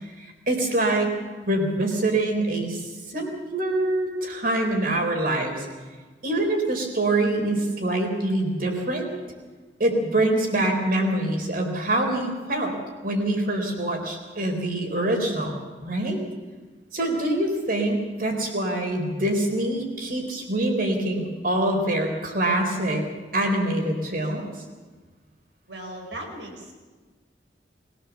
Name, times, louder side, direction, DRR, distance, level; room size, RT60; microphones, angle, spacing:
voice 1, 0.5-1.1 1.5-2.8 3.1-5.7 6.2-9.1 9.8-12.7 13.0-16.2 16.9-23.0 23.3-24.5, right 1 dB, 55° right, 3 dB, 4.0 m, -25 dB
voice 2, 25.7-26.7, right 1 dB, 85° right, 2 dB, 4.6 m, -37 dB
21.5 x 17.0 x 7.2 m, 1.4 s
head